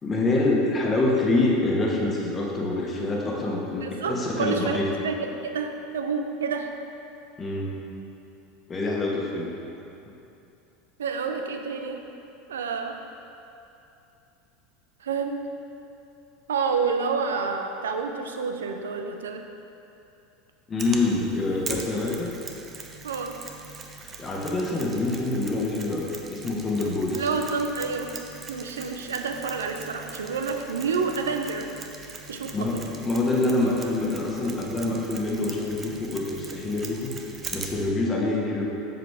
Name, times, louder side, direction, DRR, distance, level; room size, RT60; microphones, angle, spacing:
voice 1, 0.0-4.9 7.4-7.7 8.7-9.5 20.7-22.3 24.0-27.3 32.5-32.8 33.0-37.1 37.5-38.6, left 2 dB, 25° left, -2 dB, 1.4 m, -26 dB
voice 2, 3.8-6.7 11.0-12.0 12.5-13.0 15.0-15.5 16.5-19.4 23.0-23.4 27.2-28.1 28.5-31.8 32.3-32.9, right 5 dB, 75° right, 5 dB, 0.5 m, -29 dB
Mechanisms, 20.8-37.9, right 4 dB, 30° right, 0.7 m, -41 dB
7.7 x 6.7 x 3.4 m, 2.8 s
figure-of-eight pair, 80°, 0 cm